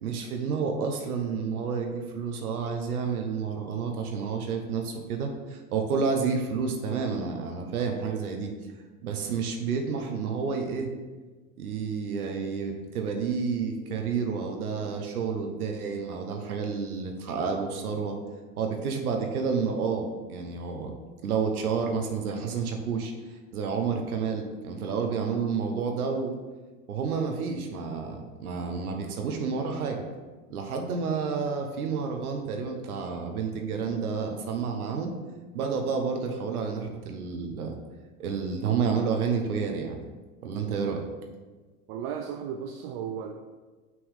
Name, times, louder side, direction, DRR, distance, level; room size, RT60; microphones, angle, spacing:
voice 1, 0.0-8.5 9.0-10.9 11.6-18.2 18.6-20.9 21.2-26.3 26.9-30.0 30.5-35.1 35.5-37.8 38.2-40.0 40.4-41.0, right 5 dB, 85° right, 3 dB, 0.9 m, -30 dB
voice 2, 41.9-43.3, right 7 dB, 60° right, 4 dB, 0.6 m, -35 dB
6.1 x 3.1 x 5.4 m, 1.3 s
hypercardioid pair, 85°, 43 cm